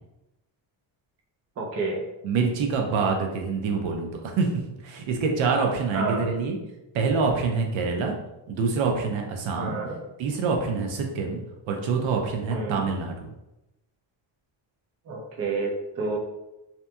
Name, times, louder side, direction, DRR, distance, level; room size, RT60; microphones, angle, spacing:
voice 1, 1.6-2.0 5.9-6.3 9.6-10.0 12.5-12.9 15.1-16.2, right 3 dB, 35° right, -2 dB, 0.5 m, -29 dB
voice 2, 2.2-6.6 6.9-8.2 8.5-9.8 10.2-11.4 11.7-13.3, right 4 dB, 75° right, 2 dB, 0.6 m, -26 dB
2.8 x 2.6 x 2.2 m, 0.94 s
cardioid pair, 145°, 47 cm